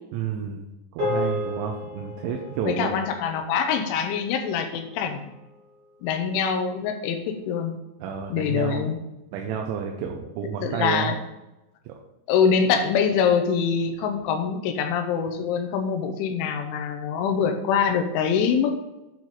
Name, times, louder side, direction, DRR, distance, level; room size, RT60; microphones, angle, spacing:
voice 1, 0.1-0.7 0.9-3.0 8.0-8.9 9.3-11.1 11.9-12.0, right 7 dB, 80° right, 2 dB, 3.0 m, -30 dB
sound 1, 1.0-5.5, left 2 dB, 45° right, 2.1 m, -34 dB
voice 2, 2.7-5.3 6.0-7.7 8.3-9.0 10.6-11.2 12.3-18.8, left 6 dB, 85° left, 6 dB, 3.2 m, -24 dB
8.7 x 4.8 x 4.0 m, 0.98 s
omnidirectional pair, 5.4 m